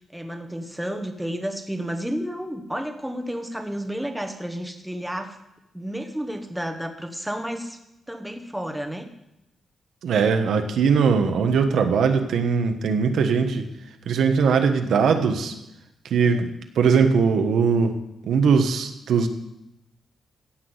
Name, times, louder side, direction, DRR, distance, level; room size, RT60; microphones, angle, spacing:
voice 1, 0.1-5.4 5.7-7.8 8.1-9.1 16.2-16.4, equal, 5° right, 6 dB, 1.2 m, -31 dB
voice 2, 10.0-13.7 14.1-15.5 16.1-16.5 16.7-18.0 18.2-19.3, right 5 dB, 75° right, 7 dB, 1.4 m, -20 dB
16.0 x 6.1 x 8.0 m, 0.87 s
wide cardioid pair, 165°, 0 cm